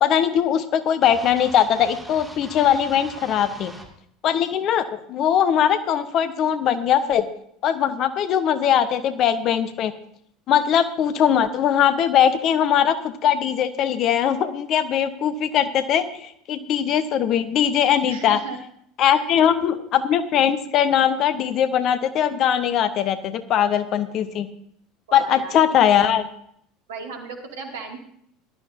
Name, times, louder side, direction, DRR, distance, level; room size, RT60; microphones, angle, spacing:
voice 1, 0.0-3.7 4.2-7.3 7.6-9.9 10.5-18.4 19.0-24.5 25.1-26.3, left 9 dB, 45° left, 11 dB, 1.0 m, -20 dB
sound 1, 1.0-3.9, right 1 dB, 5° right, 2.3 m, -42 dB
voice 2, 18.0-18.6 19.0-19.3 19.6-19.9 25.1-25.6 26.9-28.0, right 4 dB, 70° right, 2 dB, 2.3 m, -36 dB
18.5 x 12.0 x 2.7 m, 0.68 s
figure-of-eight pair, 70°, 0 cm